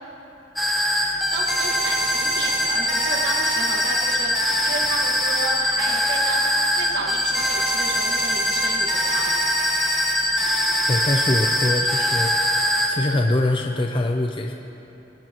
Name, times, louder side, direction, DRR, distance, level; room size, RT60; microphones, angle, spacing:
sound 1, 0.6-12.9, equal, ahead, 1.1 m, -22 dB
voice 1, 1.3-9.6, right 2 dB, 80° right, 0 dB, 1.6 m, -32 dB
voice 2, 10.9-12.3 12.9-14.5, left 1 dB, 30° left, 2 dB, 0.6 m, -23 dB
23.0 x 10.0 x 3.0 m, 3.0 s
head